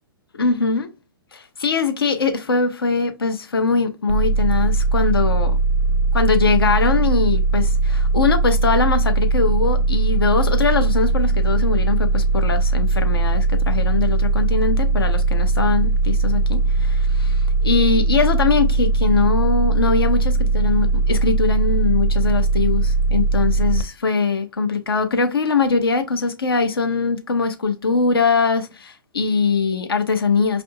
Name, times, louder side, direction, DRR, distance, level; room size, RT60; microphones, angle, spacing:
voice 1, 0.4-0.9 1.3-5.6 6.1-30.6, left 4 dB, 85° left, 0.7 m, -21 dB
sound 1, 4.1-23.8, right 3 dB, 85° right, 0.6 m, -19 dB
5.7 x 2.6 x 2.7 m
hypercardioid pair, 115°, 12 cm